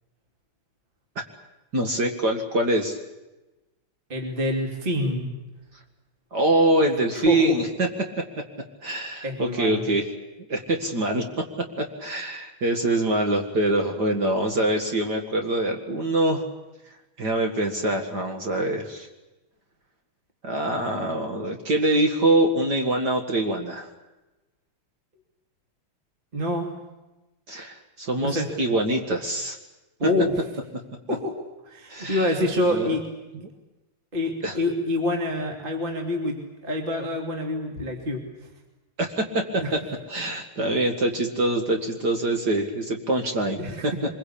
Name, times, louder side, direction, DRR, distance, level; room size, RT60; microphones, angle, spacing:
voice 1, 1.7-3.0 6.3-8.4 8.8-10.1 10.5-11.4 11.8-16.4 17.2-19.1 20.4-23.9 27.5-29.6 31.9-32.3 32.7-33.0 34.4-34.6 39.0-39.8 40.1-43.9, right 1 dB, 50° right, 3 dB, 2.5 m, -24 dB
voice 2, 4.1-5.3 7.2-7.6 9.2-9.8 26.3-26.7 28.2-28.5 30.0-30.4 31.1-31.4 31.6-33.1 34.1-38.2 39.6-39.8 43.6-44.0, left 1 dB, 25° right, 1 dB, 3.0 m, -26 dB
25.0 x 22.5 x 8.6 m, 1.0 s
omnidirectional pair, 2.3 m